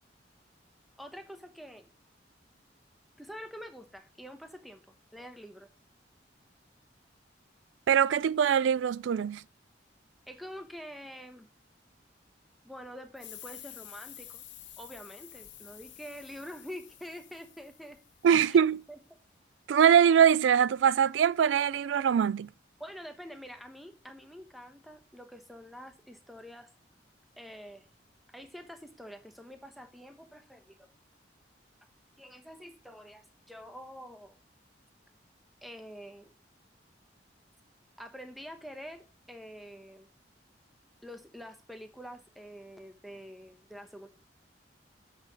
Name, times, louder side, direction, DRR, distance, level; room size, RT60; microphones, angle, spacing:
voice 1, 1.0-1.9 3.2-4.8 5.1-5.7 10.3-11.5 12.6-14.4 14.8-18.0 18.4-19.0 22.8-26.7 27.4-27.9 28.3-30.9 32.2-34.4 35.6-36.3 38.0-40.1 41.0-44.1, equal, ahead, 1.1 m, -46 dB
voice 2, 7.9-9.4 18.2-18.8 19.7-22.5, right 8 dB, 85° right, 0.3 m, -23 dB
sound 1, 13.2-18.5, left 12 dB, 85° left, 1.4 m, -50 dB
8.0 x 6.1 x 5.2 m
head